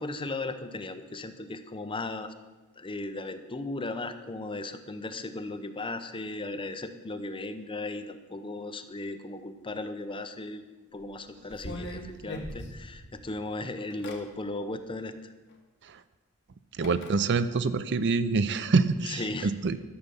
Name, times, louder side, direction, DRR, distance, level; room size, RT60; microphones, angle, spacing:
voice 1, 0.0-2.3 2.8-10.6 10.9-15.3 19.0-19.5, left 2 dB, 25° left, 8 dB, 0.7 m, -36 dB
sound 1, 11.0-11.1 11.5-13.3 13.8-14.2 15.5-15.6 16.8-17.2, left 1 dB, 55° left, 1.4 m, -40 dB
voice 2, 16.8-19.8, right 4 dB, 55° right, 13 dB, 0.5 m, -26 dB
12.0 x 6.9 x 6.9 m, 1.2 s
head